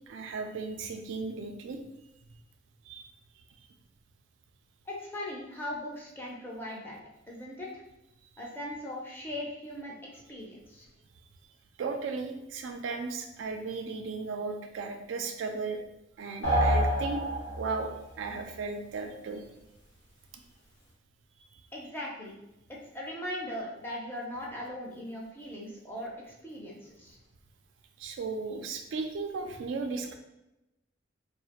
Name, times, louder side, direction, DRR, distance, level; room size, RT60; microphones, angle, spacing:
voice 1, 0.1-1.8 2.9-3.1 11.8-15.8 16.2-17.2 17.6-17.9 18.2-19.4 21.4-21.6 28.0-30.2, right 4 dB, 70° right, 5 dB, 0.3 m, -35 dB
voice 2, 4.9-7.0 7.3-7.8 8.4-10.9 21.7-22.3 22.7-27.2, left 1 dB, 10° left, -4 dB, 0.5 m, -39 dB
sound 1, 16.4-17.9, equal, 70° left, 0.8 m, -27 dB
2.4 x 2.0 x 2.8 m, 0.92 s
head